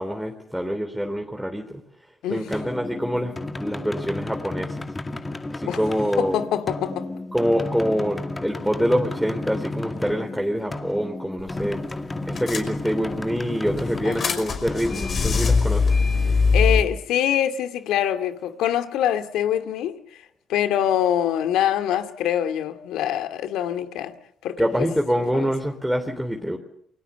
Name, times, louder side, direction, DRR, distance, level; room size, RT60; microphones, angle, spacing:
voice 1, 0.0-1.8 2.3-3.3 3.6-4.8 5.5-6.4 7.3-11.8 12.3-15.9 24.6-26.6, equal, ahead, 3.2 m, -25 dB
sound 1, 2.5-16.1, left 2 dB, 20° left, 2.3 m, -33 dB
voice 2, 6.2-7.1 14.0-14.4 16.5-20.2 20.5-24.1 24.4-24.9 25.3-25.5, left 10 dB, 90° left, 2.4 m, -24 dB
sound 2, 11.4-11.6 11.9-12.0 12.4-13.2 13.7-16.8, left 4 dB, 50° left, 5.6 m, -22 dB
28.5 x 23.0 x 6.9 m
cardioid pair, 90°, 0 cm